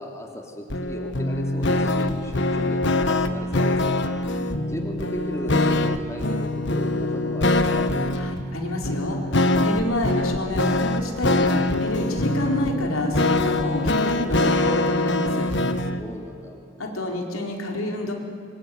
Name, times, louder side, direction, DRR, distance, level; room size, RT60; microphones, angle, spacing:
voice 1, 0.0-4.0 4.6-8.1 16.0-16.6, equal, 15° left, 2 dB, 2.8 m, -36 dB
sound 1, 0.7-16.0, left 2 dB, 60° left, 1.4 m, -23 dB
voice 2, 8.2-11.5 11.8-15.5 16.8-18.1, left 1 dB, 85° left, 1 dB, 4.2 m, -28 dB
25.5 x 23.0 x 9.5 m, 2.6 s
head